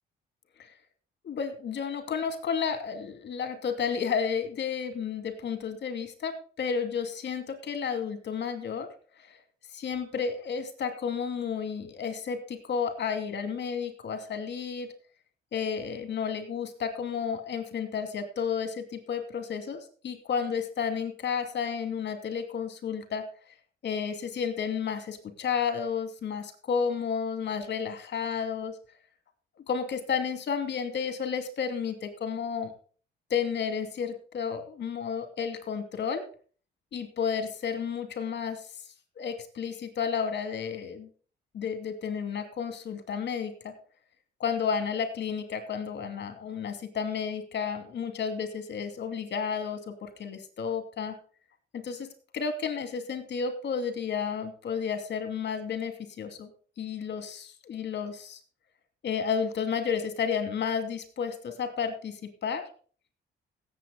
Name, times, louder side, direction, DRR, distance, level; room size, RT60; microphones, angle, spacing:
voice 1, 1.2-8.9 9.2-9.4 9.7-14.9 15.5-23.2 23.8-28.8 29.6-32.7 33.3-36.2 36.9-38.7 39.2-41.1 41.5-43.7 44.4-51.2 51.7-52.1 52.3-56.5 56.8-58.4 59.0-62.6, left 6 dB, 60° left, 8 dB, 2.6 m, -32 dB
16.5 x 7.8 x 3.9 m, 0.40 s
cardioid pair, 90°, 20 cm